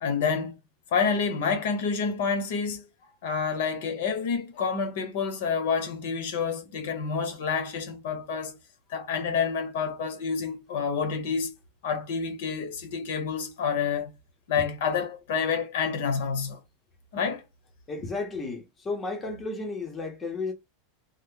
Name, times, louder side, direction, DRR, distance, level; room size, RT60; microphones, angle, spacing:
voice 1, 0.0-0.6 0.9-2.9 3.2-8.5 8.9-11.5 11.8-14.1 14.5-16.6 17.1-17.4, left 6 dB, 70° left, 1.0 m, -28 dB
voice 2, 17.9-20.5, left 3 dB, 15° left, 0.7 m, -33 dB
3.3 x 2.1 x 3.7 m
supercardioid pair, 165°, 0 cm